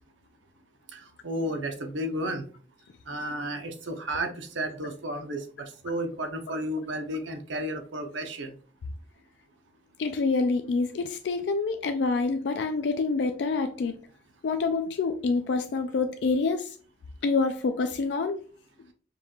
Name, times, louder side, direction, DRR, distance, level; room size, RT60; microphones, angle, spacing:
voice 1, 0.9-2.4 3.1-8.6, right 1 dB, 90° right, 4 dB, 0.7 m, -33 dB
voice 2, 10.0-14.0 14.4-16.8 17.2-18.4, left 4 dB, 65° left, 7 dB, 0.3 m, -27 dB
5.2 x 2.3 x 2.9 m, 0.41 s
head